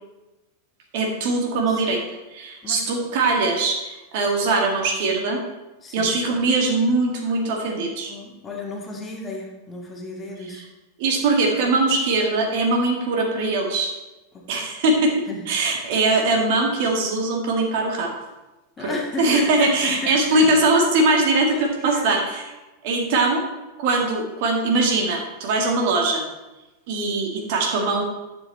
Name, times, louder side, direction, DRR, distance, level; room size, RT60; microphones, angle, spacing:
voice 1, 0.9-2.0 2.3-5.4 5.9-8.1 10.4-10.6 11.0-13.9 14.5-15.1 15.5-18.1 18.8-22.4 22.8-23.4 23.8-26.2 26.9-28.0, right 2 dB, 50° right, 1 dB, 1.8 m, -21 dB
voice 2, 2.6-3.1 5.8-6.1 8.1-10.6 14.3-14.4 15.3-15.7 18.8-20.5 21.5-22.1, left 2 dB, 20° left, -1 dB, 2.0 m, -33 dB
11.0 x 7.2 x 4.2 m, 1.1 s
figure-of-eight pair, 90°, 0 cm